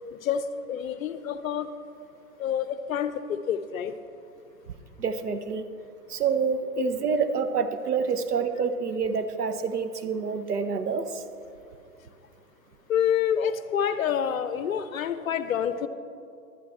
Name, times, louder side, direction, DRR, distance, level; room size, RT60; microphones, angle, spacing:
voice 1, 0.1-1.7 2.4-3.9 6.8-6.9 12.9-15.9, left 8 dB, 65° left, 12 dB, 0.6 m, -28 dB
voice 2, 5.0-5.6 6.1-11.2, right 5 dB, 85° right, 9 dB, 0.9 m, -27 dB
11.0 x 10.0 x 4.2 m, 2.5 s
hypercardioid pair, 120°, 45 cm